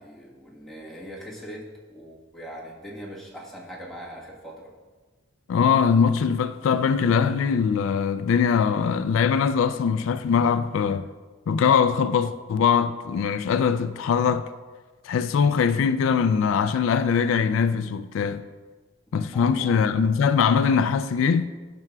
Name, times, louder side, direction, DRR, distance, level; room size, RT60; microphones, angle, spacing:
voice 1, 0.0-4.7 19.3-19.9, equal, ahead, 1.2 m, -41 dB
voice 2, 5.5-11.1 11.5-14.4 15.0-18.4 19.1-21.5, left 6 dB, 70° left, 0.3 m, -22 dB
10.5 x 6.0 x 2.2 m
head